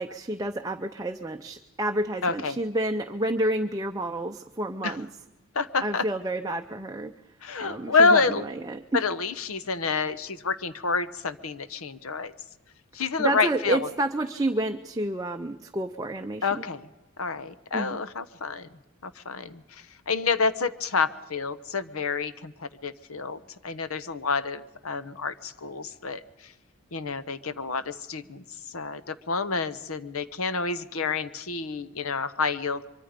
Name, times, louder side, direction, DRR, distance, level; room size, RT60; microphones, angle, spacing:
voice 1, 0.0-5.1 5.8-7.1 7.6-9.0 13.2-16.6 17.7-18.0, right 1 dB, 15° right, 5 dB, 0.6 m, -29 dB
voice 2, 2.2-2.6 4.8-5.0 5.5-6.0 7.4-8.4 8.9-12.3 12.9-13.9 16.4-16.9 17.2-18.7 19.0-26.5 26.9-28.4 28.7-32.8, left 4 dB, 90° left, 14 dB, 1.1 m, -28 dB
24.5 x 23.5 x 5.1 m, 1.0 s
head